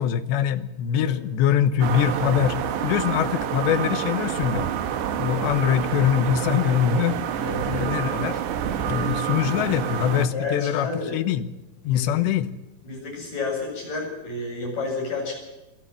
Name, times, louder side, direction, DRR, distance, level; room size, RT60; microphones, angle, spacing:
voice 1, 0.0-2.6 2.8-4.7 5.2-7.2 7.6-8.4 8.9-11.5 11.8-12.5, left 9 dB, 80° left, 11 dB, 3.2 m, -23 dB
sound 1, 1.8-10.3, right 9 dB, 75° right, 3.5 m, -28 dB
voice 2, 7.4-8.0 10.3-11.2 11.8-12.2 12.8-15.3, left 3 dB, 40° left, -1 dB, 9.3 m, -31 dB
23.0 x 13.5 x 9.4 m, 1.0 s
omnidirectional pair, 5.1 m